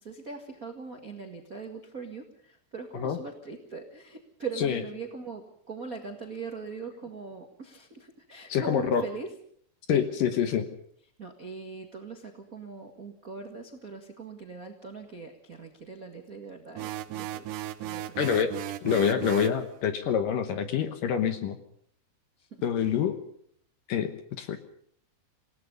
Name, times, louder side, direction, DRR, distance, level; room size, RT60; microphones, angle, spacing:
voice 1, 0.0-9.3 9.9-10.0 11.2-17.6 17.8-18.3, right 4 dB, 50° right, 3 dB, 1.0 m, -41 dB
voice 2, 8.5-9.0 9.9-10.7 18.2-21.6 22.6-23.2 23.9-24.6, left 8 dB, 65° left, 9 dB, 2.4 m, -26 dB
sound 1, 16.8-19.6, right 13 dB, 75° right, 1.9 m, -36 dB
27.5 x 18.0 x 5.4 m, 0.65 s
omnidirectional pair, 4.9 m